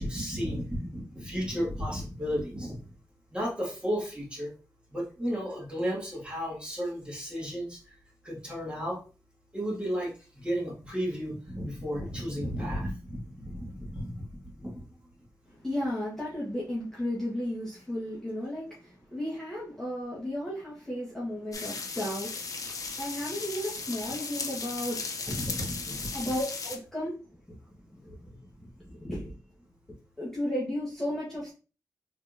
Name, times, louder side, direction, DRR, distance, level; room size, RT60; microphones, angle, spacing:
voice 1, 0.0-2.8 3.3-4.5 4.9-7.8 8.2-9.0 9.5-10.1 10.4-14.8 25.3-26.1, equal, 15° right, -3 dB, 2.1 m, -33 dB
voice 2, 15.5-25.3 26.1-27.2 27.6-28.5 28.8-29.3 30.2-31.5, left 1 dB, 5° left, -7 dB, 1.4 m, -34 dB
sound 1, 21.5-26.8, left 4 dB, 55° left, 0.8 m, -36 dB
4.2 x 3.4 x 2.7 m, 0.34 s
wide cardioid pair, 90°, 7 cm